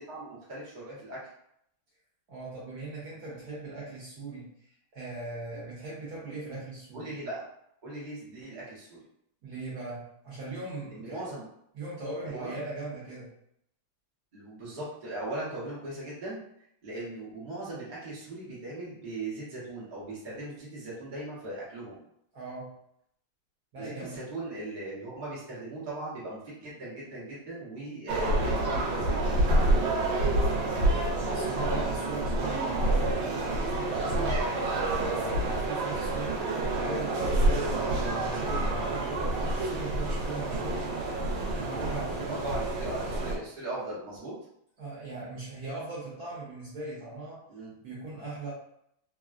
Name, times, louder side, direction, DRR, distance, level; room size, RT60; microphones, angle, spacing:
voice 1, 0.1-1.2 6.9-7.4 7.8-9.0 10.9-11.4 12.2-12.5 14.3-16.4 16.8-22.0 23.8-29.4 34.4-35.2 37.5-37.7 38.9-39.1 42.3-44.3 47.5-47.7, right 2 dB, 40° right, -7 dB, 0.7 m, -39 dB
voice 2, 2.3-7.1 9.4-11.3 11.7-13.3 22.3-22.8 23.7-24.2 30.4-30.9 31.3-34.4 35.2-40.9 41.5-42.6 44.8-47.4 47.8-48.5, right 2 dB, 60° right, -7 dB, 1.1 m, -39 dB
sound 1, 28.1-43.4, right 2 dB, 75° right, 1.4 m, -28 dB
3.5 x 2.2 x 2.4 m, 0.73 s
omnidirectional pair, 2.4 m